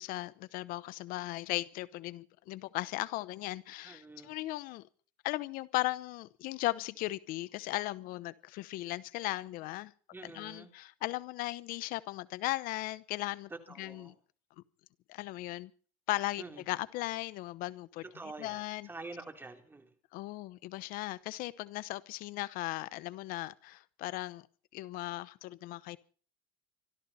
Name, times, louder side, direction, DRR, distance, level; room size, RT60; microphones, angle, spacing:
voice 1, 0.0-4.8 5.2-9.9 10.2-13.5 13.8-14.1 15.1-15.7 16.1-18.0 18.4-18.9 20.1-24.4 24.7-26.0, left 18 dB, 65° left, 0.9 m, -37 dB
voice 2, 3.8-4.3 10.1-10.7 13.5-14.1 16.4-16.6 18.0-19.9, right 3 dB, 15° right, 3.2 m, -47 dB
25.5 x 12.5 x 4.2 m
cardioid pair, 125°, 16 cm